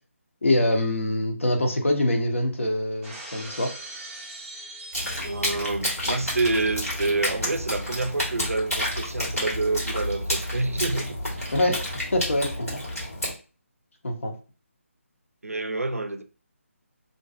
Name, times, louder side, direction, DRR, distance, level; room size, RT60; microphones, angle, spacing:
voice 1, 0.4-3.7 11.5-11.8 12.1-12.8 14.0-14.3, left 1 dB, 65° left, 0.7 m, -24 dB
Shatter, 3.0-5.8, right 2 dB, 5° right, 0.5 m, -41 dB
sound 1, 4.9-13.3, left 1 dB, 85° left, 1.4 m, -30 dB
voice 2, 5.2-11.2 15.4-16.2, right 3 dB, 80° right, 0.4 m, -28 dB
2.5 x 2.3 x 2.3 m
figure-of-eight pair, 150°, 8 cm